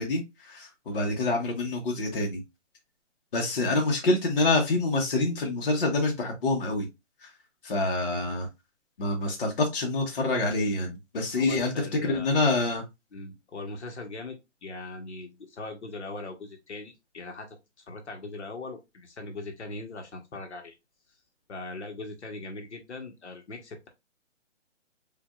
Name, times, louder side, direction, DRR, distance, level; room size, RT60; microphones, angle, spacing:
voice 1, 0.0-2.4 3.3-6.9 7.2-7.3 7.6-8.5 9.0-11.7 12.0-12.8, left 2 dB, 45° left, 0 dB, 1.1 m, -26 dB
voice 2, 11.3-12.3 13.1-17.6 17.9-20.7 21.5-23.9, left 2 dB, 60° left, 4 dB, 1.1 m, -40 dB
5.0 x 2.6 x 2.4 m, 0.22 s
hypercardioid pair, 170°, 38 cm